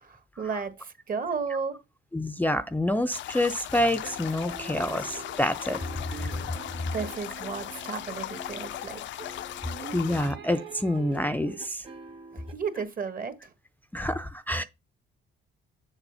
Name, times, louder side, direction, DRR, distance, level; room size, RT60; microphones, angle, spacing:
voice 1, 0.0-1.7 6.9-9.0 12.3-13.5, right 5 dB, 45° right, 1.7 m, -33 dB
voice 2, 2.1-5.8 6.1-6.3 9.9-11.8 13.9-14.6, left 1 dB, 10° left, 0.5 m, -27 dB
sound 1, 3.1-10.3, left 13 dB, 70° left, 0.4 m, -38 dB
sound 2, 4.0-12.8, right 2 dB, 25° right, 1.2 m, -47 dB
sound 3, 4.4-8.6 9.7-11.6, right 8 dB, 70° right, 1.6 m, -45 dB
7.1 x 4.8 x 5.5 m
cardioid pair, 90°, 20 cm